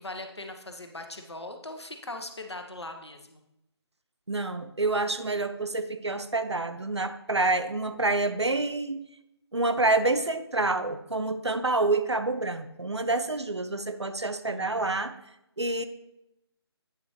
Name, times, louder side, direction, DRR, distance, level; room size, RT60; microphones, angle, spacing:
voice 1, 0.0-3.4 14.5-14.9, left 2 dB, 75° left, 5 dB, 1.2 m, -40 dB
voice 2, 4.3-9.1 9.5-15.2 15.6-15.8, right 2 dB, 85° right, 10 dB, 0.7 m, -27 dB
9.0 x 6.1 x 3.2 m, 0.86 s
figure-of-eight pair, 150°, 14 cm